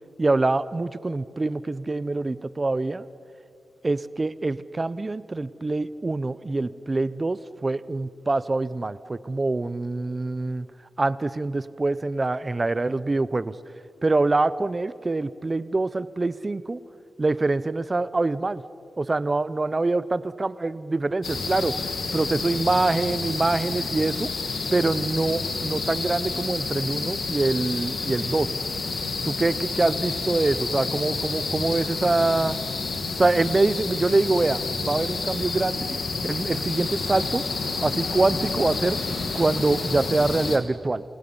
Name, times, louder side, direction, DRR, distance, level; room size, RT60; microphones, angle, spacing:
voice 1, 0.2-3.1 3.8-10.7 11.0-13.5 14.0-16.8 17.2-18.6 19.0-21.7 22.1-24.3 24.7-28.5 29.2-32.6 33.2-37.4 37.8-39.0 39.3-41.0, right 2 dB, 30° right, 16 dB, 0.9 m, -25 dB
sound 1, 21.2-40.6, left 4 dB, 70° left, 2.6 m, -29 dB
28.0 x 17.0 x 9.9 m, 2.6 s
cardioid pair, 75°, 0 cm